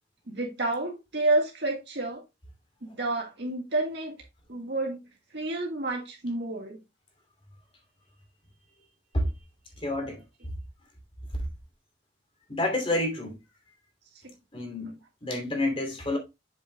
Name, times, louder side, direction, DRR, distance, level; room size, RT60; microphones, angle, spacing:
voice 1, 0.3-2.2 2.8-4.2 4.5-5.0 5.3-6.8 14.2-14.3 14.8-14.9, right 2 dB, 60° right, 1.7 m, -29 dB
voice 2, 9.8-10.2 12.5-13.4 14.5-16.2, left 1 dB, 30° left, 2.9 m, -29 dB
8.4 x 7.6 x 2.2 m
head